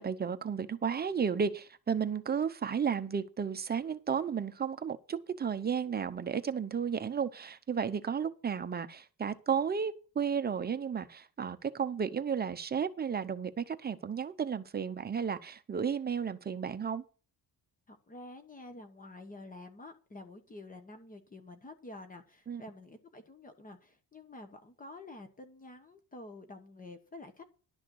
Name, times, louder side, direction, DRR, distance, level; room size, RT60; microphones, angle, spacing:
voice 1, 0.0-17.0 22.5-22.6, right 7 dB, 25° right, 0.7 m, -33 dB
voice 2, 17.9-27.4, left 2 dB, 25° left, 1.0 m, -49 dB
11.5 x 6.4 x 6.3 m
cardioid pair, 170°, 36 cm